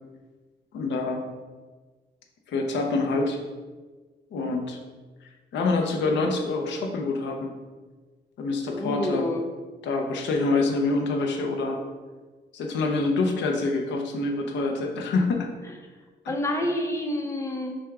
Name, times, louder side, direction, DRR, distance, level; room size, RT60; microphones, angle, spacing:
voice 1, 0.7-1.2 2.5-3.4 4.3-4.8 5.5-7.6 8.4-9.3 9.8-11.8 12.5-15.5 16.2-16.3, left 3 dB, 80° left, 2 dB, 0.7 m, -26 dB
voice 2, 8.7-9.5 16.3-17.8, left 1 dB, 15° left, 2 dB, 0.5 m, -28 dB
6.2 x 2.3 x 3.5 m, 1.3 s
cardioid pair, 150°, 18 cm